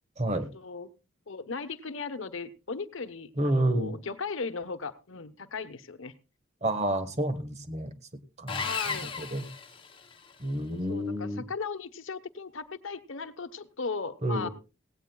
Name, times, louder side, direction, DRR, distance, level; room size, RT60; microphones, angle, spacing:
voice 1, 0.2-0.9 1.3-6.1 8.5-9.1 10.9-14.5, left 4 dB, 70° left, 11 dB, 1.0 m, -37 dB
voice 2, 3.4-3.9 6.6-7.9 8.4-8.6 8.9-9.5 10.4-11.4 14.2-14.5, right 1 dB, 35° right, 10 dB, 1.4 m, -29 dB
Sawing, 8.5-10.4, left 5 dB, 25° left, 1.6 m, -35 dB
17.0 x 17.0 x 2.3 m, 0.31 s
head